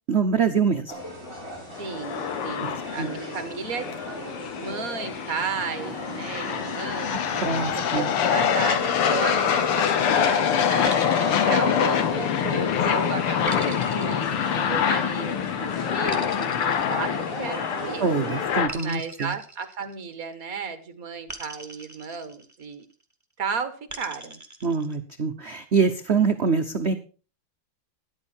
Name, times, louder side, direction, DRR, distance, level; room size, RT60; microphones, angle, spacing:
voice 1, 0.1-0.9 3.0-3.1 7.1-8.1 12.8-12.9 18.0-19.3 24.6-26.9, right 5 dB, 70° right, 7 dB, 0.6 m, -24 dB
sound 1, 0.9-18.6, equal, 10° left, 3.8 m, -37 dB
sound 2, 1.8-18.7, left 8 dB, 90° left, 2.1 m, -25 dB
voice 2, 1.8-3.9 4.6-7.4 7.8-18.1 18.8-22.9 23.4-24.4, right 6 dB, 45° right, 11 dB, 1.6 m, -34 dB
sound 3, 10.9-12.5 13.5-15.1 16.1-17.8 18.7-20.4 21.3-22.8 23.9-25.0, right 2 dB, 10° right, 1.0 m, -41 dB
13.5 x 11.0 x 4.4 m, 0.36 s
omnidirectional pair, 2.4 m